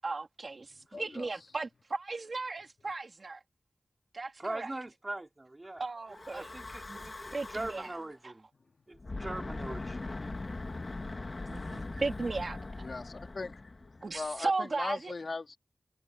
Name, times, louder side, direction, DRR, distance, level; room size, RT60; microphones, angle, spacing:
voice 1, 0.0-3.4 4.1-4.7 5.8-6.5 6.9-7.0 7.3-7.9 8.2-8.3 11.5-12.8 14.0-15.1, right 3 dB, 60° right, 3.0 m, -36 dB
voice 2, 0.7-1.3 8.9-9.1 12.8-15.6, left 3 dB, 65° left, 2.1 m, -40 dB
voice 3, 4.4-8.5 8.9-10.0 11.7-12.0, right 2 dB, 30° right, 4.5 m, -41 dB
Breathing / Wind, 6.1-8.0 8.9-14.3, left 2 dB, 45° left, 2.4 m, -41 dB
wide cardioid pair, 75°, 0 cm